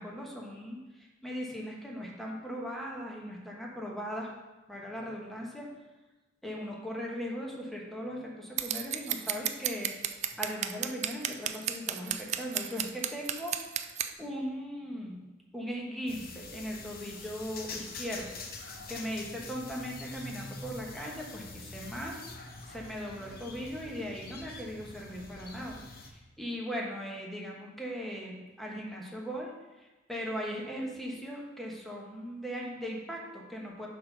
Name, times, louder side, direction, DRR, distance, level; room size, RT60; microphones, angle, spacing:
voice 1, 0.0-4.3 4.7-5.7 6.4-13.6 14.2-15.3 15.5-18.4 18.9-22.2 22.7-25.8 26.1-29.5 29.8-33.9, equal, ahead, -2 dB, 1.1 m, -39 dB
Scissors, 8.6-14.1, right 10 dB, 35° right, 0.3 m, -32 dB
sound 1, 16.1-26.1, left 3 dB, 50° left, 0.8 m, -45 dB
6.7 x 4.0 x 5.6 m, 1.1 s
head